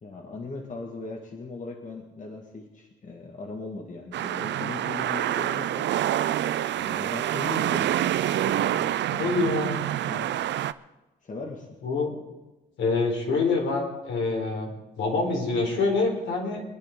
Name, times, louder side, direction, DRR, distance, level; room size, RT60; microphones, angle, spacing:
voice 1, 0.0-5.9 6.7-7.9 8.4-9.7 10.1-10.3 11.2-11.7, left 3 dB, 40° left, 1 dB, 2.2 m, -38 dB
sound 1, 4.1-10.7, right 12 dB, 65° right, 0.5 m, -27 dB
voice 2, 9.2-9.8 11.8-12.1 12.8-16.6, left 3 dB, 75° left, 0 dB, 4.2 m, -26 dB
25.0 x 10.0 x 3.9 m, 1.1 s
cardioid pair, 90°, 20 cm